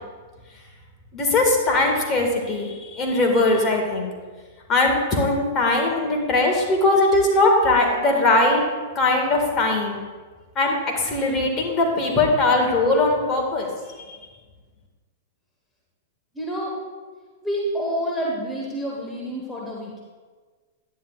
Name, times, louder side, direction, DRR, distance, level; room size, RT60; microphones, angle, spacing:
voice 1, 1.1-4.1 4.7-8.6 9.0-10.0 10.6-10.8 11.0-13.7, left 2 dB, 30° left, 1 dB, 1.8 m, -20 dB
voice 2, 16.3-16.8 17.4-20.0, equal, 10° left, -3 dB, 1.4 m, -28 dB
10.0 x 9.5 x 2.4 m, 1.4 s
hypercardioid pair, 120°, 0 cm